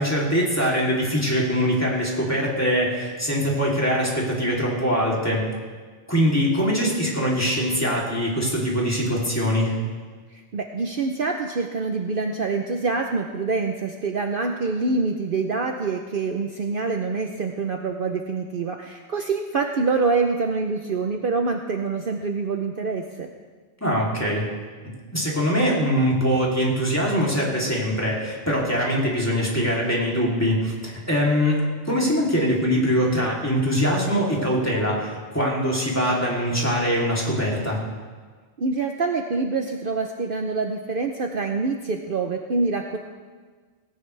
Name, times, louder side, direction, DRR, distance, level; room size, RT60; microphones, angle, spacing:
voice 1, 0.0-5.5 6.1-9.8 23.8-24.5 25.1-31.6 31.9-37.8, equal, 15° left, -4 dB, 3.1 m, -23 dB
voice 2, 10.3-23.3 38.6-43.0, right 4 dB, 50° right, 4 dB, 0.9 m, -26 dB
17.5 x 16.5 x 3.4 m, 1.5 s
omnidirectional pair, 1.2 m